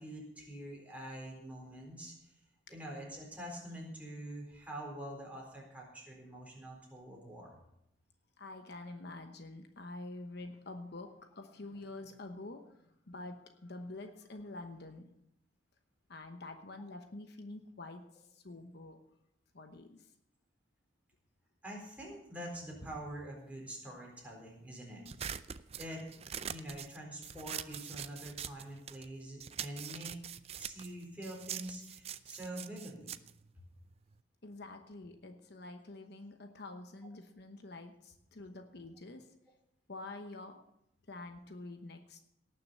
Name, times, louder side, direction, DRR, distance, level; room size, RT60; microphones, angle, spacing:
voice 1, 0.0-2.3 2.7-7.6 21.6-25.0 25.8-26.1 26.5-30.2 30.6-33.1, right 1 dB, 5° right, -2 dB, 4.1 m, -45 dB
voice 2, 8.4-15.1 16.1-19.0 19.5-20.1 34.4-39.3 39.9-40.6 41.1-42.2, left 2 dB, 55° left, 5 dB, 1.0 m, -47 dB
sound 1, 25.1-29.1 29.4-34.2, right 9 dB, 30° right, 0.4 m, -44 dB
18.0 x 6.8 x 6.8 m, 0.80 s
head